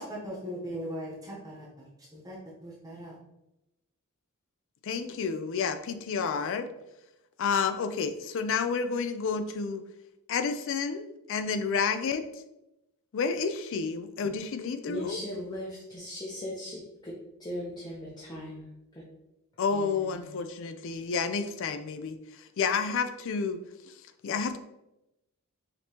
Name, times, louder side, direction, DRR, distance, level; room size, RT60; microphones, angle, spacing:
voice 1, 0.0-1.9 2.1-2.4 2.6-3.1, equal, 15° right, -5 dB, 0.9 m, -39 dB
voice 2, 4.8-6.7 7.4-9.8 10.3-12.2 13.1-15.2 19.6-23.6 23.8-23.9 24.2-24.6, left 5 dB, 60° left, 9 dB, 0.4 m, -30 dB
voice 3, 14.9-17.1 17.4-18.6 19.7-20.2, left 1 dB, 20° left, -5 dB, 0.7 m, -38 dB
5.0 x 2.9 x 2.9 m, 0.90 s
head